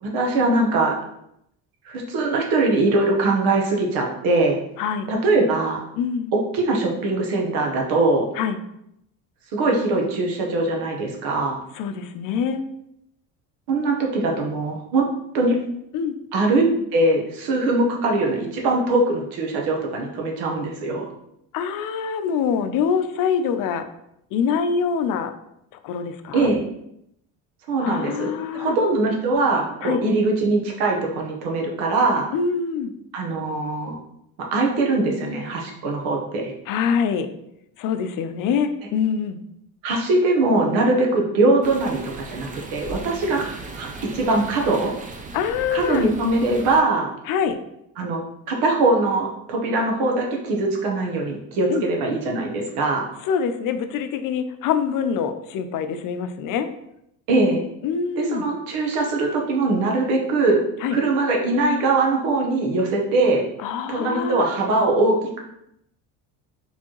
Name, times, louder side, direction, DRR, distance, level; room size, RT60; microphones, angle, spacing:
voice 1, 0.0-1.0 1.8-4.6 5.1-5.8 6.3-8.3 9.5-11.6 13.7-15.0 15.3-15.6 16.3-16.6 16.9-21.1 26.3-26.6 27.7-32.3 33.1-34.0 34.4-36.5 39.8-43.9 44.1-44.9 45.7-47.1 48.0-48.2 48.5-53.0 57.3-57.6 58.2-60.6 60.9-63.4 63.9-65.4, right 2 dB, 80° right, 0 dB, 1.1 m, -21 dB
voice 2, 4.8-5.1 6.0-6.3 8.4-8.6 11.7-12.6 15.9-16.1 21.5-23.9 24.3-25.3 25.8-26.5 27.8-28.8 29.8-30.0 32.3-32.9 36.7-37.3 37.8-39.4 45.3-46.1 47.3-47.6 51.7-51.8 53.2-56.7 57.8-58.5 60.8-61.0 63.6-64.5, left 6 dB, 60° left, 9 dB, 0.6 m, -24 dB
sound 1, 41.6-46.8, right 3 dB, 20° right, 0.5 m, -37 dB
4.4 x 3.4 x 3.0 m, 0.77 s
cardioid pair, 105°, 36 cm